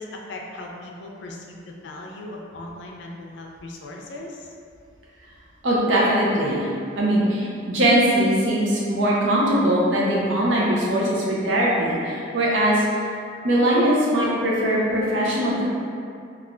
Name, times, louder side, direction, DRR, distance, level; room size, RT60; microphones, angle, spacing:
voice 1, 0.0-4.5, left 2 dB, 75° left, 0 dB, 0.4 m, -38 dB
voice 2, 5.6-6.7 6.9-12.9 13.4-15.6, right 1 dB, 90° right, -5 dB, 0.7 m, -21 dB
3.2 x 2.4 x 2.4 m, 2.4 s
head